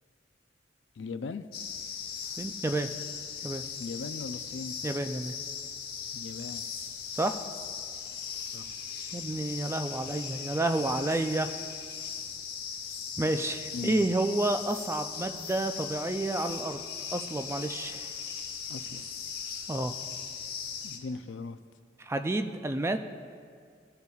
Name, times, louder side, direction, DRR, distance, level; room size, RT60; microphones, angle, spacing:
voice 1, 1.0-1.4 3.8-4.8 6.1-6.6 8.5-8.7 13.7-14.1 18.7-19.0 20.8-21.6, left 4 dB, 75° left, 11 dB, 0.4 m, -38 dB
sound 1, 1.5-21.0, left 7 dB, 55° left, 1.1 m, -39 dB
voice 2, 2.2-2.9 3.4-3.6 4.8-5.3 7.1-7.4 9.1-11.5 13.2-16.8 17.1-18.1 19.7-19.9 22.0-23.0, right 2 dB, 15° right, 8 dB, 0.3 m, -30 dB
18.0 x 6.7 x 2.4 m, 2.1 s
head